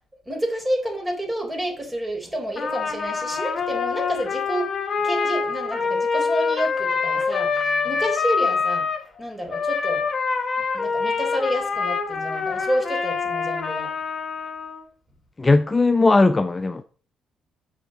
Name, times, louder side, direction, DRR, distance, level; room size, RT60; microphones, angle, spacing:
voice 1, 0.3-4.7 5.0-8.9 9.2-10.1 10.7-13.9, equal, 15° right, 3.6 m, -29 dB
Trumpet, 2.6-9.0 9.5-14.8, left 5 dB, 40° left, 2.0 m, -25 dB
voice 2, 15.4-16.8, left 3 dB, 20° left, 0.6 m, -18 dB
7.1 x 5.8 x 6.1 m
cardioid pair, 90°, 0 cm